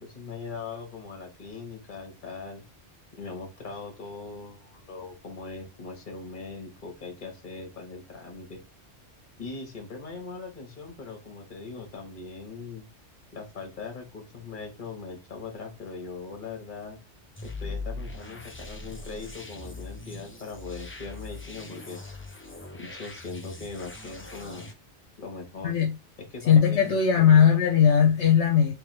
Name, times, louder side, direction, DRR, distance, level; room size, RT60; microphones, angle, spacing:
voice 1, 0.0-2.6 3.2-8.6 9.4-12.9 13.3-17.0 17.4-22.0 22.8-24.7 25.2-25.7 26.3-27.4, left 4 dB, 45° left, 1.4 m, -40 dB
sound 1, 17.4-24.7, left 3 dB, 20° left, 0.4 m, -41 dB
voice 2, 25.6-26.0 26.5-28.7, left 7 dB, 70° left, 1.0 m, -19 dB
3.4 x 3.3 x 3.2 m
omnidirectional pair, 1.2 m